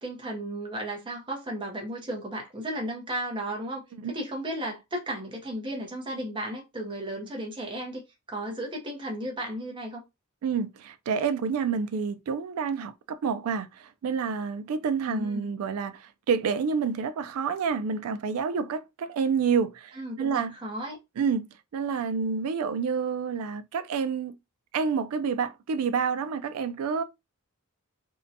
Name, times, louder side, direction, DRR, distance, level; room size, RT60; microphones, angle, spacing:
voice 1, 0.0-10.0 15.1-15.5 20.0-21.0, right 1 dB, 20° right, 0.6 m, -34 dB
voice 2, 10.4-20.6 21.2-24.4 24.7-27.0, right 6 dB, 75° right, 0.3 m, -28 dB
2.6 x 2.1 x 2.6 m
head